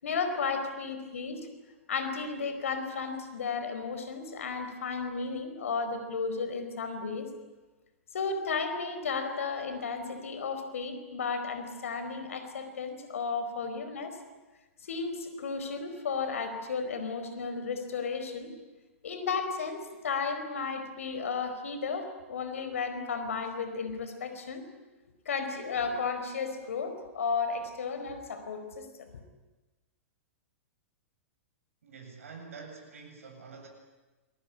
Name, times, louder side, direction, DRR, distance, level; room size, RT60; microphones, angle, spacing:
voice 1, 0.0-1.5 1.9-7.3 8.1-14.2 14.8-18.5 19.0-24.6 25.2-29.1, left 5 dB, 75° left, 8 dB, 4.7 m, -34 dB
voice 2, 31.8-33.7, right 5 dB, 75° right, 2 dB, 7.7 m, -47 dB
26.5 x 20.5 x 10.0 m, 1.2 s
hypercardioid pair, 115°, 7 cm